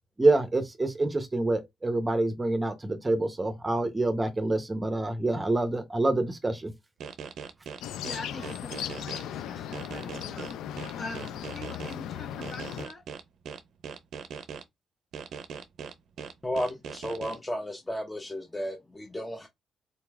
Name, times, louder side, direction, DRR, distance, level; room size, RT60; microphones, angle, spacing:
voice 1, 0.2-6.7, right 2 dB, 20° right, 0.7 m, -26 dB
sound 1, 7.0-9.2 9.7-11.9 12.4-14.6 15.1-17.4, right 7 dB, 75° right, 0.5 m, -40 dB
sound 2, 7.8-12.9, left 10 dB, 90° left, 0.3 m, -37 dB
voice 2, 8.0-10.6 11.0-13.0, left 2 dB, 40° left, 1.2 m, -43 dB
voice 3, 16.4-19.5, equal, 15° left, 0.7 m, -33 dB
4.0 x 2.9 x 2.3 m
cardioid pair, 80°, 0 cm